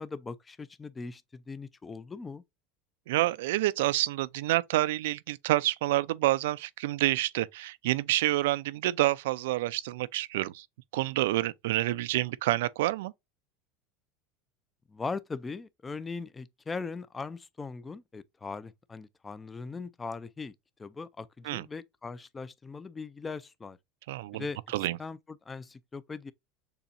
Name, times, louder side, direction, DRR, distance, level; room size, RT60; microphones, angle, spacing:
voice 1, 0.0-2.4 14.9-20.5 20.8-23.8 24.3-24.6 25.0-26.3, left 4 dB, 10° left, 0.3 m, -39 dB
voice 2, 3.1-10.6 10.9-13.1 21.4-21.7 24.1-24.5 24.7-25.0, right 16 dB, 85° right, 0.4 m, -28 dB
6.8 x 2.8 x 2.5 m
supercardioid pair, 165°, 0 cm